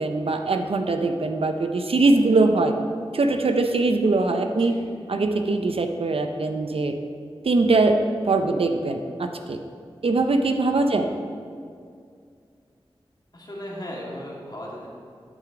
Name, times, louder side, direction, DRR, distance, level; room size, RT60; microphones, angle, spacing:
voice 1, 0.0-2.7 3.1-4.7 5.1-6.9 7.4-8.0 8.2-9.6 10.0-11.1, right 3 dB, 70° right, 6 dB, 0.6 m, -22 dB
voice 2, 13.3-14.9, equal, 45° left, -4 dB, 2.2 m, -37 dB
9.8 x 5.0 x 4.8 m, 2.2 s
wide cardioid pair, 55°, 10 cm